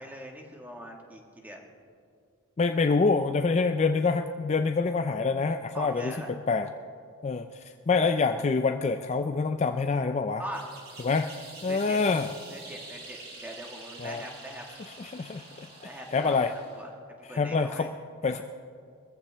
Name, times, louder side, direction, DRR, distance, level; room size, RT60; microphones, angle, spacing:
voice 1, 0.0-1.7 5.7-6.3 10.4-10.7 11.7-12.0 12.5-14.6 15.8-16.9 17.2-17.9, equal, 5° right, 1 dB, 1.4 m, -41 dB
voice 2, 2.6-6.7 7.2-10.4 11.0-11.3 11.6-12.3 14.0-14.2 14.8-15.7 16.1-16.5 17.3-17.9 18.2-18.4, left 4 dB, 30° left, 7 dB, 0.3 m, -26 dB
sound 1, 10.5-16.9, right 3 dB, 45° right, 2.8 m, -47 dB
22.5 x 14.5 x 3.3 m, 2.3 s
head